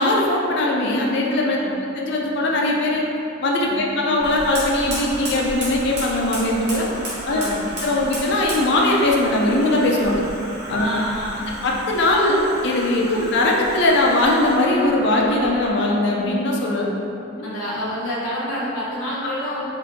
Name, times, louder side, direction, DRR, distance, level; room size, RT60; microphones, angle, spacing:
voice 1, 0.0-3.0 3.4-6.9 7.3-7.4 7.8-10.2 10.7-10.9 11.6-16.9 17.4-17.5, left 1 dB, 55° left, -2 dB, 0.4 m, -20 dB
Alarm, 4.2-15.7, right 1 dB, 15° right, 0.7 m, -36 dB
Fire, 4.2-14.8, right 1 dB, 55° right, 1.1 m, -36 dB
voice 2, 7.3-7.7 10.8-11.6 13.1-13.3 17.4-19.6, equal, 85° left, -9 dB, 1.1 m, -29 dB
4.4 x 2.6 x 2.7 m, 2.9 s
head